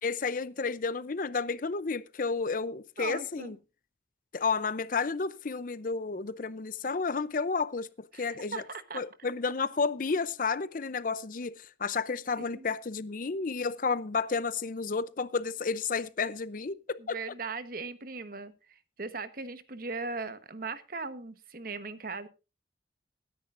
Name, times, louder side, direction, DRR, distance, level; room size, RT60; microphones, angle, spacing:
voice 1, 0.0-3.6 4.3-8.6 8.9-17.2, left 4 dB, 45° left, 0.5 m, -31 dB
voice 2, 3.0-3.6 8.1-9.0 12.4-12.7 17.1-18.5 19.0-22.3, right 4 dB, 50° right, 1.1 m, -38 dB
21.5 x 10.0 x 2.5 m
head